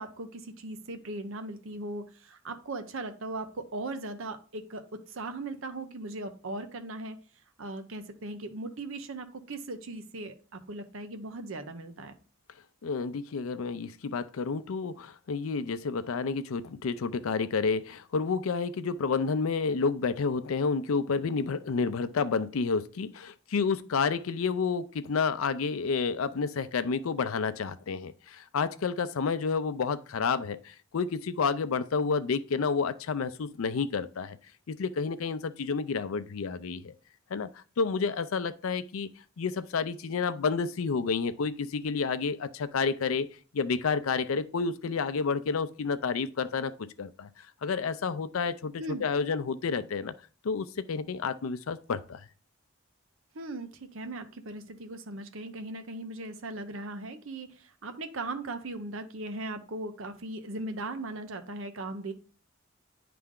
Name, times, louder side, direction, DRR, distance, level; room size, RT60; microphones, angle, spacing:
voice 1, 0.0-7.2 7.6-12.1 48.8-49.0 53.3-62.1, right 2 dB, 75° right, 0.7 m, -38 dB
voice 2, 12.8-34.4 34.7-36.9 37.3-39.1 39.4-43.3 43.5-47.3 47.6-50.1 50.4-52.2, left 5 dB, 85° left, 0.5 m, -30 dB
9.6 x 3.4 x 3.7 m
head